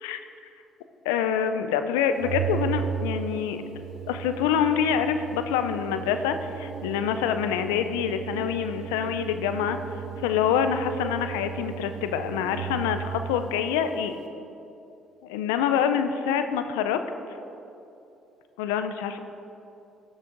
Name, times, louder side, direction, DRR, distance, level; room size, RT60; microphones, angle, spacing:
voice 1, 1.0-3.6 4.1-9.8 10.2-14.2 15.2-17.0 18.6-19.2, left 8 dB, 90° left, 9 dB, 0.4 m, -26 dB
Organ, 2.2-13.2, right 10 dB, 70° right, 0.8 m, -35 dB
12.0 x 6.3 x 3.9 m, 2.8 s
supercardioid pair, 65°, 0 cm